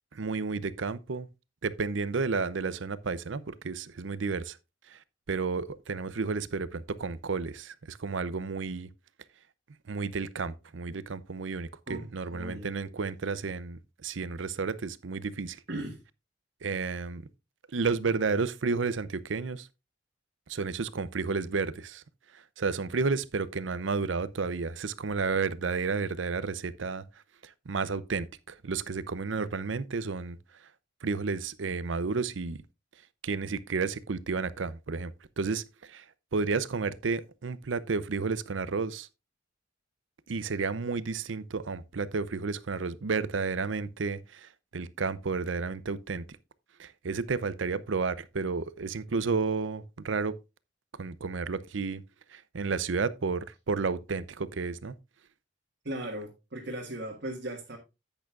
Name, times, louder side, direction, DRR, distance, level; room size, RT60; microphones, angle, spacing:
voice 1, 0.1-1.3 1.6-4.6 4.9-5.0 5.3-8.9 9.9-15.6 16.6-17.3 17.7-19.7 20.5-22.0 22.3-27.0 27.4-30.4 31.0-32.6 33.2-36.0 36.3-39.1 40.3-46.2 46.8-50.4 51.0-52.0 52.3-54.9, right 4 dB, 75° right, 0.6 m, -32 dB
voice 2, 11.9-13.0 15.7-16.0 55.8-57.8, right 1 dB, 60° right, 1.8 m, -38 dB
10.5 x 8.9 x 2.4 m
head